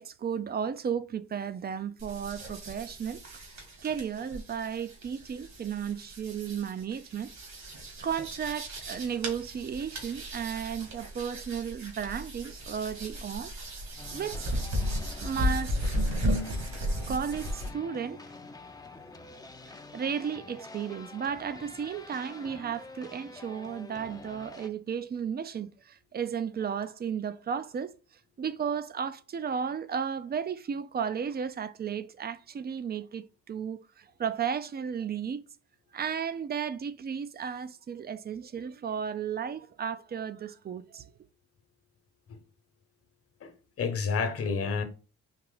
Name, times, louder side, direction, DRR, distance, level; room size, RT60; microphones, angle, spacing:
voice 1, 0.0-3.2 3.8-7.3 8.0-13.5 14.1-14.6 15.2-15.8 17.1-18.3 19.7-27.9 28.4-35.4 35.9-41.1, right 7 dB, 30° right, 0.5 m, -34 dB
sound 1, 2.0-17.7, equal, 60° right, 1.9 m, -35 dB
sound 2, 14.0-24.7, left 3 dB, 15° left, 0.6 m, -47 dB
voice 2, 43.8-44.8, left 5 dB, 50° left, 1.1 m, -29 dB
4.5 x 2.9 x 3.9 m
cardioid pair, 90°, 30 cm